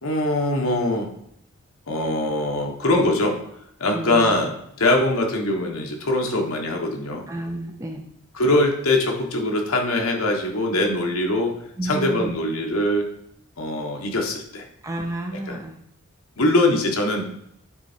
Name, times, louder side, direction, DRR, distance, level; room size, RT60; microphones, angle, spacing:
voice 1, 0.0-1.1 1.9-3.4 3.8-7.2 8.3-11.5 11.8-13.1 13.6-14.6 15.5-15.6 16.4-17.3, left 1 dB, 75° left, 2 dB, 1.5 m, -22 dB
voice 2, 3.9-4.3 7.3-8.0 11.8-12.4 14.8-15.8, right 1 dB, 15° right, 3 dB, 0.5 m, -30 dB
8.8 x 4.1 x 4.4 m, 0.74 s
head